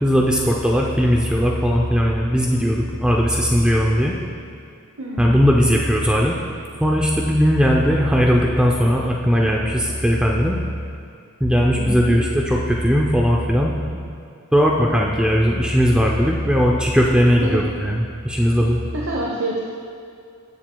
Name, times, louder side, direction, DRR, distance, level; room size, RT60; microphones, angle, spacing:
voice 1, 0.0-4.2 5.2-6.4 6.8-10.6 11.4-14.0 14.5-18.8, equal, 5° right, -2 dB, 0.5 m, -18 dB
voice 2, 5.0-5.3 11.7-12.2 17.4-17.6 18.9-19.6, right 2 dB, 60° right, -3 dB, 0.9 m, -27 dB
14.5 x 7.5 x 2.3 m, 2.4 s
head